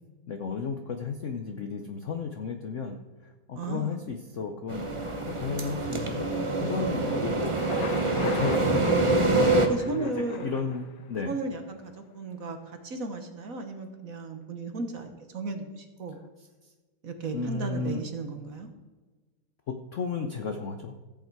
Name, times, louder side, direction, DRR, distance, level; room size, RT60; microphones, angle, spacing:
voice 1, 0.3-6.3 6.6-9.1 9.9-11.3 16.6-16.7 17.3-18.0 19.7-20.9, left 5 dB, 85° left, 6 dB, 0.6 m, -34 dB
voice 2, 3.5-4.0 6.9-7.2 9.7-10.5 11.3-16.2 17.0-18.7, right 3 dB, 50° right, 6 dB, 1.3 m, -35 dB
sound 1, 4.7-9.7, right 2 dB, 35° right, 0.5 m, -25 dB
Thunder, 7.4-11.3, left 6 dB, 60° left, 1.4 m, -41 dB
14.5 x 8.2 x 4.6 m, 1.3 s
omnidirectional pair, 2.3 m